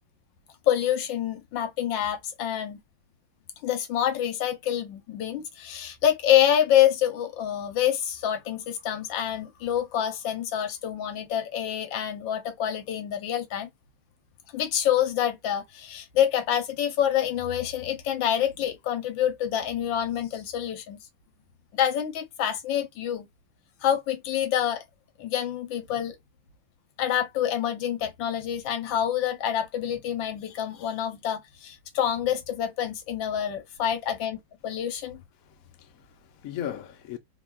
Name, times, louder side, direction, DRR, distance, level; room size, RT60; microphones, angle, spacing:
voice 1, 0.7-2.8 3.6-13.7 14.5-21.0 21.7-23.3 23.8-24.8 25.2-26.2 27.0-35.2, left 10 dB, 80° left, 1.4 m, -27 dB
voice 2, 35.4-37.2, left 10 dB, 65° left, 0.9 m, -38 dB
3.3 x 2.2 x 2.3 m
omnidirectional pair, 2.1 m